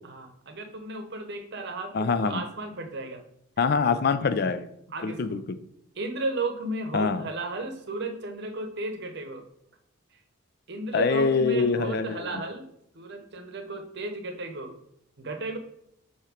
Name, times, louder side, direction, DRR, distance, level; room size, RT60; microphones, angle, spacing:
voice 1, 0.0-3.2 4.9-5.4 6.0-9.4 10.7-12.6 12.9-14.7 15.2-15.6, right 2 dB, 55° right, 6 dB, 0.8 m, -34 dB
voice 2, 1.9-2.4 3.6-4.7 5.0-5.4 6.9-7.2 10.9-12.4, left 4 dB, 50° left, 11 dB, 0.4 m, -24 dB
7.6 x 2.9 x 5.0 m, 0.76 s
head